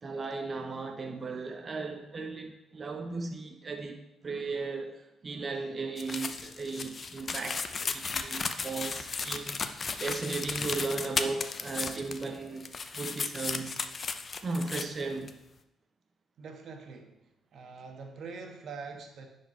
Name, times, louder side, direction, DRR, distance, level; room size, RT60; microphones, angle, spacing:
voice 1, 0.0-12.7 12.9-13.8 14.4-15.3, right 3 dB, 40° right, 5 dB, 1.0 m, -36 dB
sound 1, 6.0-12.4 12.6-14.8 15.3-15.4, left 4 dB, 45° left, 0.7 m, -35 dB
voice 2, 16.4-19.3, right 4 dB, 65° right, 3 dB, 1.4 m, -44 dB
10.0 x 4.7 x 4.5 m, 0.86 s
supercardioid pair, 65°, 0 cm